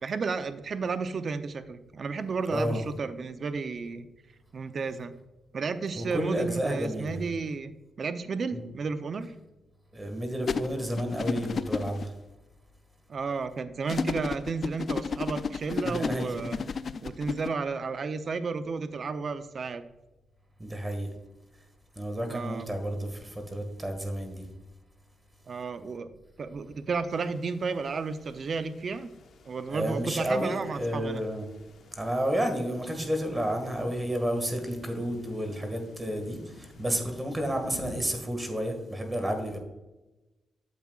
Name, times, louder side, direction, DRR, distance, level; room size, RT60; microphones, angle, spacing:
voice 1, 0.0-4.1 4.5-5.1 5.5-7.7 8.0-9.3 13.1-16.6 17.0-19.8 22.3-22.7 25.5-26.1 26.4-29.1 29.4-31.2, right 4 dB, 50° right, 11 dB, 0.5 m, -32 dB
voice 2, 2.5-2.8 6.0-7.2 8.5-8.6 9.9-12.1 15.8-16.4 20.6-21.1 21.9-24.5 29.7-31.5 31.9-39.6, equal, 20° right, 5 dB, 1.7 m, -31 dB
sound 1, 10.5-12.1 13.9-17.5, left 5 dB, 50° left, 0.3 m, -32 dB
sound 2, 27.1-38.1, left 2 dB, 65° left, 1.1 m, -51 dB
9.3 x 7.3 x 2.4 m, 1.0 s
cardioid pair, 75°, 0 cm